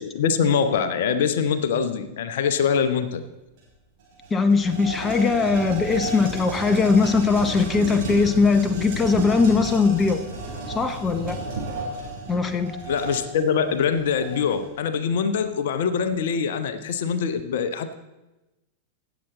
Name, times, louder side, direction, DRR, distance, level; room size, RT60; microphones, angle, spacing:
voice 1, 0.0-3.2 12.9-17.9, left 6 dB, 55° left, 11 dB, 0.7 m, -24 dB
sound 1, 3.6-3.7 4.0-14.7, right 2 dB, 50° right, 4.2 m, -33 dB
voice 2, 4.3-10.3 10.7-11.4 12.3-12.8, left 4 dB, 15° left, 9 dB, 0.7 m, -20 dB
16.0 x 7.1 x 4.2 m, 1.0 s
figure-of-eight pair, 90°, 0 cm